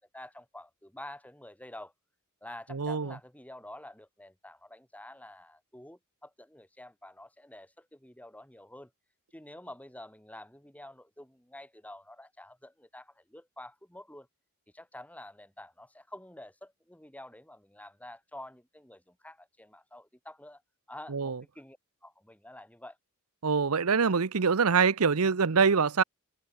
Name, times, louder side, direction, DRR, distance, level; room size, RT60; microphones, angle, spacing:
voice 1, 0.0-1.9 2.4-8.9 9.3-14.3 14.7-20.6 20.9-21.8 22.0-23.0, left 1 dB, 5° left, 7.4 m, -48 dB
voice 2, 2.7-3.1 21.1-21.4 23.4-26.0, right 5 dB, 75° right, 0.8 m, -24 dB
head